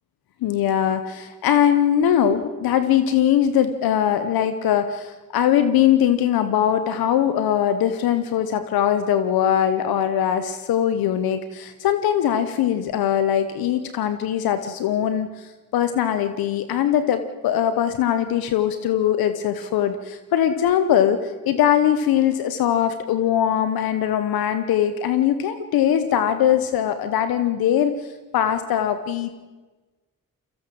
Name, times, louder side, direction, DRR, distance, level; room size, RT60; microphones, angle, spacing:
voice 1, 0.4-15.3 15.7-27.9 28.3-29.3, left 10 dB, 90° left, 10 dB, 1.0 m, -21 dB
24.0 x 15.5 x 7.7 m, 1.2 s
supercardioid pair, 45°, 35 cm